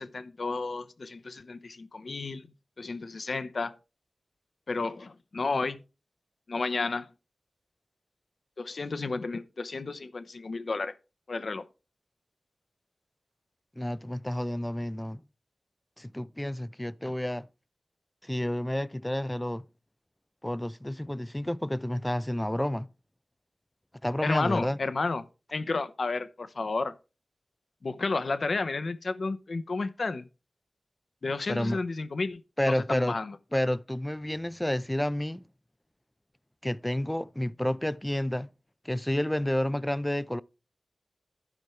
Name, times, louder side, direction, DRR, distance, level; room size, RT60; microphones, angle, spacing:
voice 1, 0.0-3.7 4.7-5.8 6.5-7.1 8.6-10.9 11.3-11.7 24.2-25.2 25.5-26.9 27.8-30.2 31.2-33.4, left 3 dB, 70° left, 0.9 m, -32 dB
voice 2, 13.8-15.2 16.0-17.5 18.3-19.6 20.4-22.9 24.0-24.8 31.5-31.8 32.6-33.2 33.5-35.4 36.6-38.5 38.9-40.4, left 1 dB, 15° left, 0.5 m, -30 dB
12.5 x 5.3 x 4.5 m
cardioid pair, 55°, 0 cm